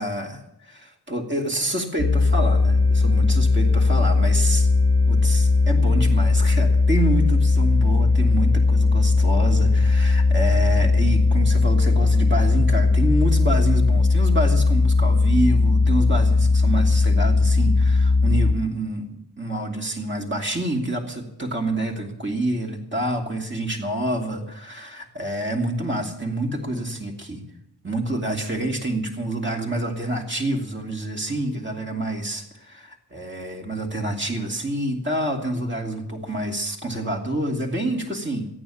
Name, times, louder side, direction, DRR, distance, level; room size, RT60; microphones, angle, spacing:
voice 1, 0.0-0.4 0.7-4.7 5.1-27.4 27.8-38.5, right 1 dB, 30° right, 1 dB, 2.8 m, -27 dB
sound 1, 2.0-18.5, left 3 dB, 40° left, 1.6 m, -18 dB
14.0 x 9.7 x 8.6 m, 0.77 s
wide cardioid pair, 75°, 39 cm